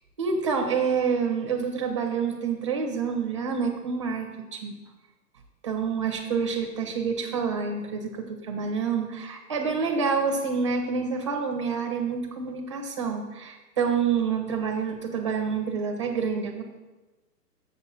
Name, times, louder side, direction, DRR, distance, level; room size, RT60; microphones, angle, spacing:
voice 1, 0.2-4.8 5.6-16.6, right 5 dB, 20° right, 2 dB, 0.5 m, -28 dB
7.2 x 6.6 x 4.1 m, 1.1 s
hypercardioid pair, 145°, 49 cm